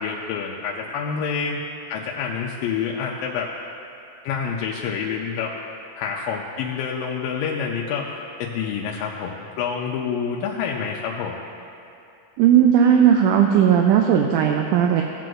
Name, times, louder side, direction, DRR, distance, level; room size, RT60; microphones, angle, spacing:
voice 1, 0.0-1.6 1.9-3.5 4.2-5.5 6.0-8.1 8.4-11.4, left 6 dB, 90° left, -2 dB, 2.3 m, -27 dB
voice 2, 12.4-15.0, right 9 dB, 85° right, 2 dB, 1.8 m, -16 dB
16.0 x 7.6 x 2.5 m, 2.7 s
omnidirectional pair, 4.0 m